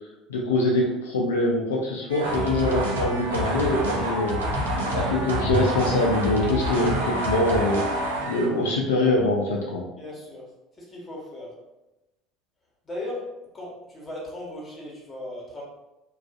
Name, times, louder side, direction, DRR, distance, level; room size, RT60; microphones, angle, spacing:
voice 1, 0.3-4.4 4.9-7.8 8.2-9.8, left 1 dB, 85° left, -2 dB, 0.3 m, -24 dB
sound 1, 2.1-8.6, right 1 dB, 85° right, 0.4 m, -27 dB
sound 2, 3.2-3.3 3.7-3.8 4.2-5.0 5.4-7.7 7.9-8.0, left 4 dB, 50° left, 0.8 m, -33 dB
voice 2, 10.0-10.4 10.8-11.5 12.8-13.3 13.5-15.6, left 1 dB, 25° left, -3 dB, 1.1 m, -37 dB
2.3 x 2.3 x 2.3 m, 0.98 s
hypercardioid pair, 70°, 0 cm